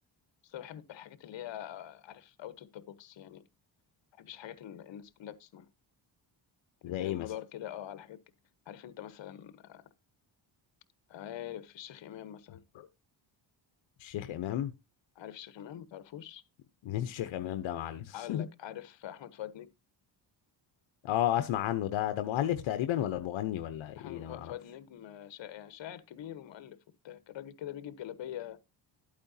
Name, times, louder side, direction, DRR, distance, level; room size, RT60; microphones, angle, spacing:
voice 1, 0.4-3.4 4.2-5.7 6.9-8.2 8.7-9.8 11.1-12.6 15.1-16.4 18.1-19.7 24.0-26.8 27.0-28.6, left 11 dB, 70° left, 1.2 m, -44 dB
voice 2, 6.8-7.3 14.0-14.7 16.9-18.5 21.0-24.5, left 12 dB, 85° left, 0.9 m, -32 dB
12.0 x 8.7 x 2.7 m
cardioid pair, 105°, 45 cm